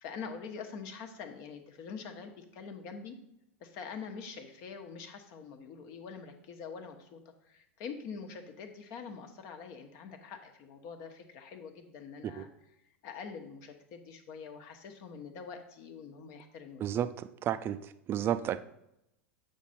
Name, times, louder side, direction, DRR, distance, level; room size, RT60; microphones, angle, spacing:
voice 1, 0.0-3.2 3.6-12.5 13.0-16.8, left 5 dB, 50° left, 6 dB, 1.1 m, -45 dB
voice 2, 16.8-17.8 18.1-18.6, right 10 dB, 35° right, 12 dB, 0.5 m, -31 dB
8.3 x 5.1 x 4.2 m, 0.83 s
figure-of-eight pair, 90°, 7 cm